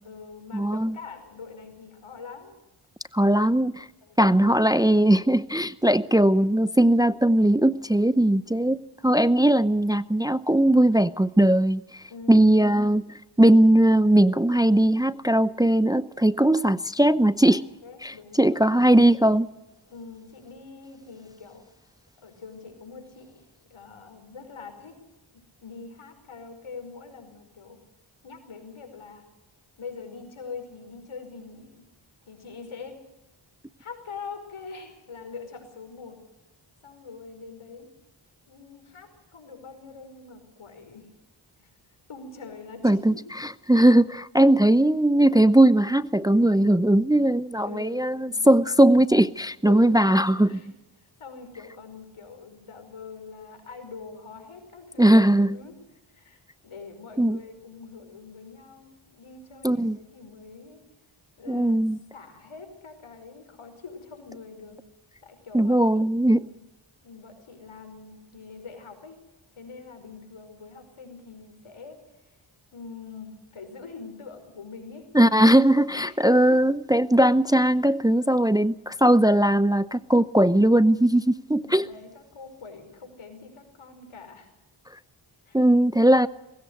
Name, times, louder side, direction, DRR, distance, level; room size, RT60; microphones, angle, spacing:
voice 1, 0.0-2.6 4.0-4.3 8.5-8.6 12.1-12.5 17.5-18.7 19.9-21.6 22.2-25.0 25.3-27.8 28.2-29.2 29.8-31.9 32.3-33.0 33.8-36.2 36.8-37.9 38.5-41.1 41.6-41.7 42.1-43.2 47.6-48.7 49.6-49.9 50.3-50.7 51.0-55.8 56.1-60.8 61.4-64.8 65.2-65.8 66.4-66.6 67.0-69.2 69.5-72.0 72.7-75.1 75.9-76.2 81.6-84.5 85.5-85.6, left 4 dB, 75° left, 5.2 m, -44 dB
voice 2, 0.5-1.0 3.1-3.9 4.2-13.0 13.4-17.6 18.0-19.5 42.8-43.1 43.4-50.5 55.0-55.5 57.2-57.4 59.6-60.0 61.5-62.0 65.5-66.4 75.1-81.9 85.5-86.3, right 1 dB, 10° right, 0.7 m, -19 dB
20.0 x 17.5 x 8.0 m
cardioid pair, 40°, 49 cm